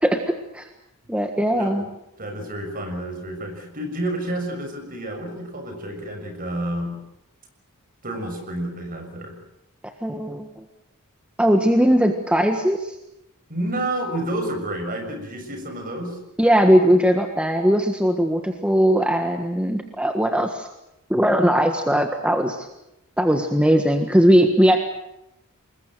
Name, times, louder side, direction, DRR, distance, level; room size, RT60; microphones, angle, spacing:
voice 1, 0.0-0.6 1.1-1.9 10.0-10.6 11.4-12.9 16.4-20.7 21.1-22.7 23.2-24.8, equal, 5° right, 5 dB, 1.5 m, -19 dB
voice 2, 1.5-1.9 2.2-7.0 8.0-9.4 13.5-16.2, right 1 dB, 40° right, 5 dB, 6.6 m, -29 dB
26.0 x 21.5 x 7.9 m, 0.86 s
head